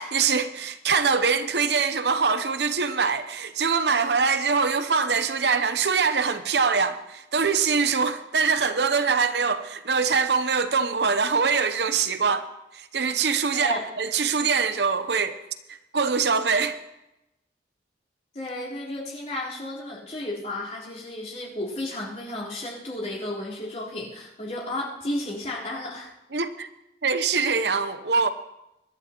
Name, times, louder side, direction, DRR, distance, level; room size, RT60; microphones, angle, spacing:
voice 1, 0.0-15.4 15.7-16.8 26.3-26.7 27.0-28.3, right 5 dB, 70° right, 0.8 m, -23 dB
voice 2, 13.5-13.8 18.3-26.1, left 1 dB, 40° left, 4.1 m, -33 dB
24.5 x 11.5 x 3.0 m
head